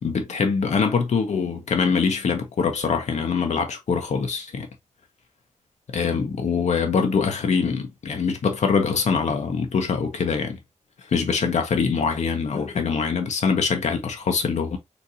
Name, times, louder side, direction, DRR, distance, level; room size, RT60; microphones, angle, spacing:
voice 1, 0.0-4.7 5.9-10.6 11.1-14.8, left 5 dB, 65° left, 0.7 m, -23 dB
4.0 x 2.6 x 2.6 m
wide cardioid pair, 115°, 13 cm